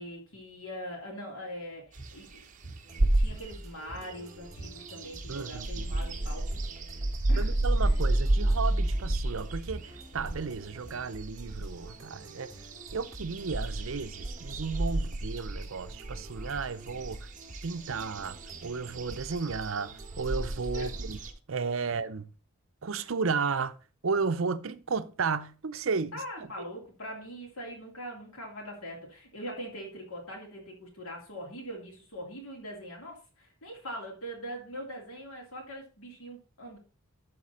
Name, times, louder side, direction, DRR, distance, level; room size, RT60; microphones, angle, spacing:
voice 1, 0.0-2.4 3.1-6.7 7.3-8.0 20.7-20.9 26.1-36.8, equal, 80° left, 2.8 m, -42 dB
sound 1, 1.9-2.2 2.6-2.9 3.3-4.3 4.6-4.8 5.1-5.6 5.8-6.8 7.1-7.4 7.8-8.0 8.5-8.7 9.1-11.1, right 2 dB, 25° left, 3.3 m, -46 dB
sound 2, 2.0-3.6 4.0-21.3, right 1 dB, 35° right, 1.0 m, -31 dB
sound 3, 2.8-21.3, right 1 dB, 20° right, 2.9 m, -49 dB
voice 2, 5.3-5.9 7.3-12.5 12.9-17.2 17.6-21.2 21.5-22.3 22.8-23.8 24.0-26.1, right 5 dB, 65° right, 0.6 m, -33 dB
12.5 x 4.2 x 4.2 m
head